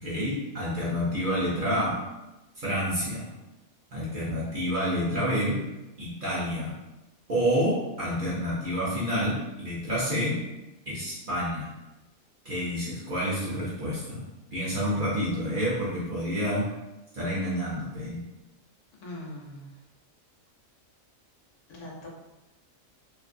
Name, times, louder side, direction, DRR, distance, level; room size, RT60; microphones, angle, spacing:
voice 1, 0.0-2.0 2.6-3.3 3.9-5.6 6.0-6.7 7.3-10.4 10.9-11.7 12.4-14.2 14.5-16.7 17.1-18.2, equal, 50° right, -7 dB, 0.7 m, -28 dB
voice 2, 19.0-19.7 21.7-22.1, left 1 dB, 70° left, -2 dB, 1.0 m, -41 dB
2.5 x 2.4 x 2.6 m, 1.0 s
omnidirectional pair, 1.4 m